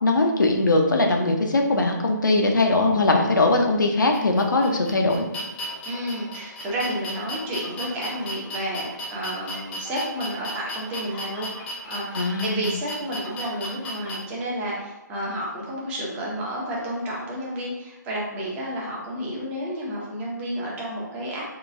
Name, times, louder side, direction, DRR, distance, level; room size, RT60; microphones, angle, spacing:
voice 1, 0.0-5.3 12.1-12.7, left 2 dB, 75° left, 2 dB, 0.6 m, -21 dB
sound 1, 4.1-14.2, equal, 10° left, 0.4 m, -35 dB
voice 2, 5.9-11.5 11.9-21.5, right 1 dB, 15° right, -5 dB, 0.7 m, -31 dB
3.7 x 2.4 x 2.5 m, 1.0 s
figure-of-eight pair, 145°, 10 cm